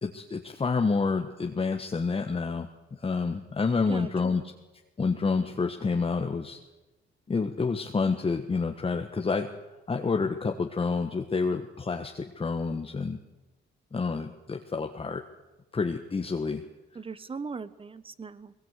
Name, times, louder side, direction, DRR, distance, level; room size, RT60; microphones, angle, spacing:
voice 1, 0.0-2.7 3.0-4.4 5.0-6.6 7.3-9.5 9.9-13.2 13.9-15.2 15.7-16.6, left 4 dB, 30° left, 4 dB, 1.4 m, -28 dB
voice 2, 3.9-4.5 16.9-18.5, right 4 dB, 25° right, 15 dB, 1.2 m, -39 dB
20.5 x 20.5 x 8.3 m, 1.1 s
cardioid pair, 90°, 20 cm